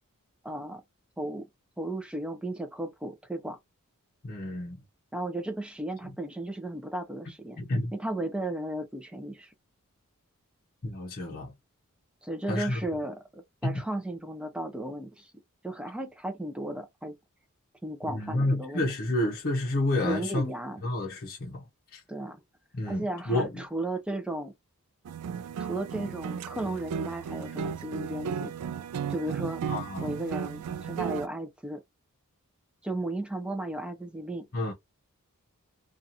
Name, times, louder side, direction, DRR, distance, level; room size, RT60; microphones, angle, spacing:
voice 1, 0.4-0.8 1.2-1.5 1.8-3.6 5.1-7.6 7.9-9.5 12.2-15.3 15.6-17.2 17.8-18.9 20.0-20.8 22.1-22.4 22.9-24.5 25.6-28.5 29.1-29.6 30.0-31.8 32.8-34.5, right 1 dB, 5° right, 0.5 m, -35 dB
voice 2, 4.2-4.8 7.6-7.9 10.8-11.5 12.5-12.8 13.6-13.8 18.1-20.5 20.8-21.6 21.9-22.0 22.7-23.6 29.7-30.1 34.5-34.7, left 1 dB, 45° left, 0.7 m, -30 dB
sound 1, 25.1-31.3, right 7 dB, 80° right, 0.3 m, -35 dB
2.8 x 2.3 x 2.5 m
head